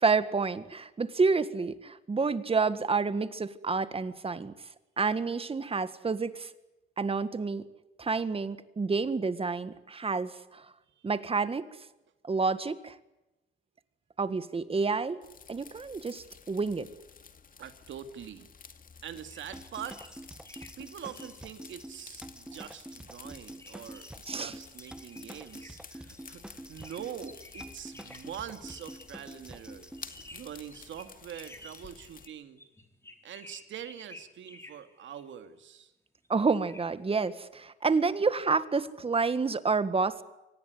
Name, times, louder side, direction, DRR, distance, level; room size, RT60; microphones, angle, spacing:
voice 1, 0.0-4.5 5.0-6.5 7.0-7.6 8.0-10.6 11.0-11.7 12.2-13.0 14.2-15.2 15.5-16.9 24.3-24.6 36.3-40.2, right 4 dB, 30° right, 13 dB, 1.8 m, -29 dB
sound 1, 15.2-32.3, left 6 dB, 45° left, 2.3 m, -52 dB
voice 2, 17.6-18.5 19.0-20.0 20.8-29.9 30.3-32.6 33.2-35.9, right 9 dB, 70° right, 9 dB, 2.4 m, -44 dB
sound 2, 19.1-22.0 22.6-22.8 23.1-23.2 23.6-26.4 26.8-29.1 30.0-35.2 36.2-36.9, left 2 dB, 15° left, 3.9 m, -53 dB
sound 3, 19.5-30.3, right 1 dB, 5° right, 1.3 m, -47 dB
25.0 x 18.5 x 9.5 m, 0.98 s
cardioid pair, 90°, 20 cm